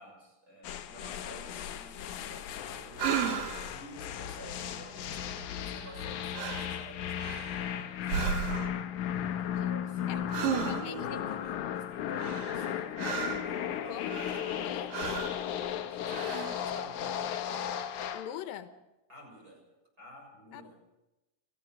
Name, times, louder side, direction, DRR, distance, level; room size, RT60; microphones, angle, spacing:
voice 1, 0.0-3.1 3.7-8.3 9.5-13.0 13.4-14.8 15.9-17.3 19.1-19.7 20.0-20.8, right 1 dB, 25° right, 0 dB, 7.4 m, -50 dB
sound 1, 0.6-18.3, left 10 dB, 70° left, 2.3 m, -36 dB
sound 2, 3.0-3.7 5.8-6.1 6.3-6.8 7.2-7.7 8.1-8.8 10.3-11.0 12.2-13.5 14.1-14.6 14.9-15.4 16.0-16.6, right 7 dB, 90° right, 3.3 m, -34 dB
voice 2, 9.3-9.8 10.1-10.2 10.5-11.0 13.9-14.2 14.6-15.1 18.1-18.7 20.5-20.8, left 11 dB, 85° left, 9 dB, 2.8 m, -43 dB
29.5 x 14.5 x 6.5 m, 0.98 s
omnidirectional pair, 3.9 m